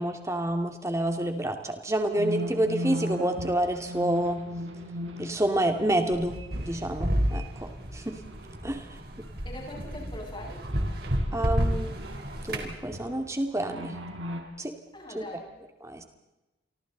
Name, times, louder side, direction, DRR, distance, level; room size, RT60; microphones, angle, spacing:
voice 1, 0.0-4.5 5.2-8.2 8.6-8.9 11.3-12.0 12.4-14.0 14.6-14.7 15.1-15.2 15.8-16.0, right 1 dB, 15° right, 5 dB, 2.4 m, -28 dB
sound 1, 2.2-7.0 7.3-8.9 9.2-9.4 9.7-13.2 13.6-14.4, equal, 80° right, 4.4 m, -38 dB
sound 2, 6.1-12.7, equal, 50° right, 4.0 m, -31 dB
voice 2, 9.4-10.7 14.9-15.5, left 1 dB, 25° left, -1 dB, 6.8 m, -41 dB
29.5 x 25.0 x 4.1 m, 1.0 s
head